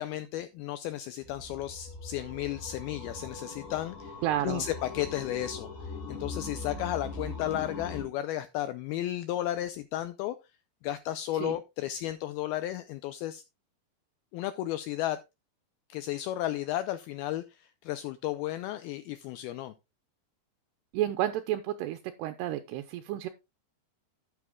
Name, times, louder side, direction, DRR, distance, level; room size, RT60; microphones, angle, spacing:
voice 1, 0.0-4.1 4.4-10.4 10.8-13.4 14.3-15.2 15.9-19.7, left 13 dB, 85° left, 2.2 m, -33 dB
sound 1, 1.2-8.1, left 3 dB, 65° left, 5.4 m, -41 dB
voice 2, 4.2-4.7 11.3-11.5 20.9-23.3, right 13 dB, 80° right, 2.6 m, -31 dB
12.0 x 9.2 x 2.3 m
omnidirectional pair, 4.9 m